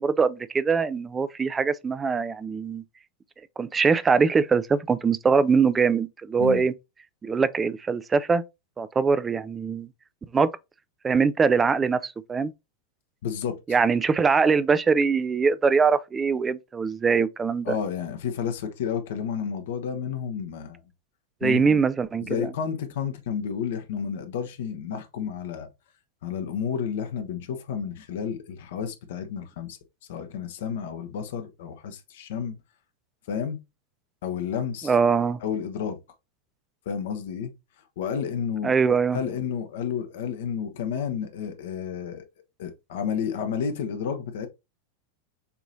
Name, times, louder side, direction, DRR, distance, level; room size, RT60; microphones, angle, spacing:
voice 1, 0.0-2.8 3.6-6.7 7.2-8.4 8.8-9.9 10.3-10.5 11.0-12.5 13.7-17.8 21.4-22.5 34.8-35.4 38.6-39.2, right 5 dB, 15° right, 0.4 m, -22 dB
voice 2, 13.2-13.6 17.7-20.8 21.4-21.8 22.2-25.7 26.2-29.8 30.1-32.5 33.3-33.6 34.2-34.9 35.4-36.0 36.9-37.5 38.0-42.2 42.6-44.5, left 7 dB, 55° left, 0.9 m, -31 dB
6.8 x 3.0 x 2.6 m
figure-of-eight pair, 90°, 0 cm